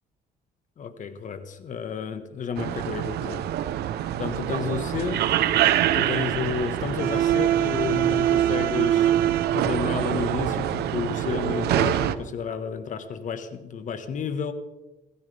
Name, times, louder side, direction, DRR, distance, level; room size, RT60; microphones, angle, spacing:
voice 1, 0.8-3.5 4.2-5.3 5.9-9.2 9.5-14.5, left 6 dB, 50° left, 1.6 m, -31 dB
sound 1, 2.6-12.2, right 11 dB, 75° right, 1.0 m, -24 dB
26.5 x 15.0 x 3.6 m
cardioid pair, 110°, 17 cm